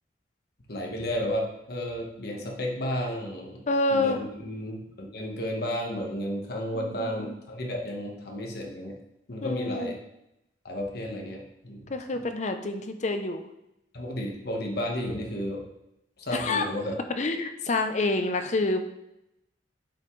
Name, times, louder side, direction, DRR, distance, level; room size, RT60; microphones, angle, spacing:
voice 1, 0.7-8.9 9.3-10.0 10.6-12.2 13.9-15.6 16.2-17.0, equal, 60° left, 0 dB, 1.3 m, -33 dB
voice 2, 3.7-4.2 6.7-6.9 7.2-7.3 9.4-9.9 11.9-13.4 16.3-16.7 17.2-18.8, left 2 dB, 40° left, 7 dB, 0.6 m, -27 dB
8.7 x 5.8 x 3.2 m, 0.84 s
head